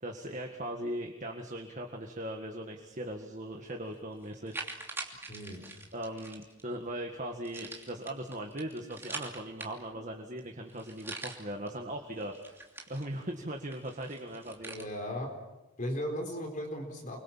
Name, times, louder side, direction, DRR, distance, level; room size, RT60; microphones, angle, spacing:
voice 1, 0.0-4.6 5.9-12.6 12.9-14.9, right 1 dB, 35° right, 3 dB, 1.8 m, -39 dB
sound 1, 3.6-3.7 4.2-6.6 7.4-10.0 10.4-10.5 10.7-11.7 12.1-13.3 13.7-14.9, right 3 dB, 10° right, 2.9 m, -44 dB
voice 2, 5.3-5.6 14.6-15.3 15.8-17.2, equal, 35° left, 2 dB, 4.2 m, -36 dB
29.5 x 23.0 x 7.4 m, 1.0 s
head